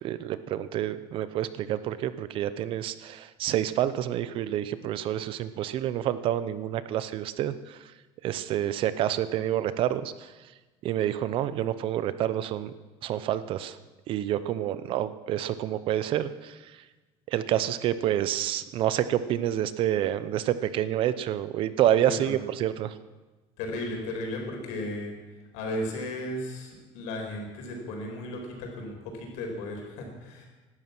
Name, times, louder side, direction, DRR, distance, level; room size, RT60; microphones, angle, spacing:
voice 1, 0.0-7.8 8.2-10.3 10.8-12.7 13.0-13.8 14.1-16.6 17.3-22.9, right 11 dB, 45° right, 14 dB, 0.7 m, -28 dB
voice 2, 21.9-22.4 23.6-25.1 25.5-30.4, left 1 dB, 80° left, 1 dB, 5.0 m, -35 dB
17.0 x 12.5 x 6.1 m, 1.2 s
cardioid pair, 175°, 12 cm